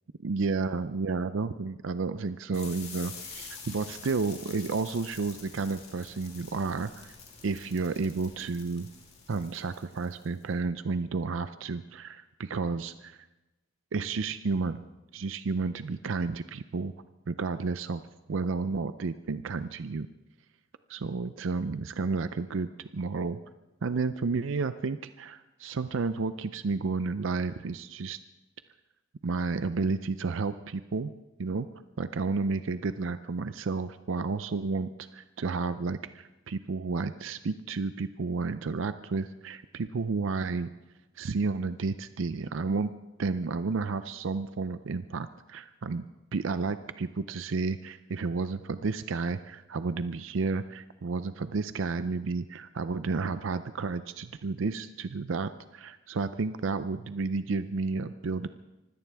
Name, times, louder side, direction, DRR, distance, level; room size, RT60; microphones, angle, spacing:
voice 1, 0.2-7.2 7.4-8.9 9.3-13.3 13.9-14.8 15.1-16.9 17.3-18.0 18.3-20.1 20.9-23.4 23.8-28.2 29.2-31.1 31.4-31.7 32.0-40.7 41.2-42.9 43.2-58.5, right 4 dB, 70° right, 12 dB, 0.5 m, -31 dB
sound 1, 2.5-10.4, left 5 dB, 30° left, 3.0 m, -47 dB
24.5 x 16.5 x 3.5 m, 1.0 s
head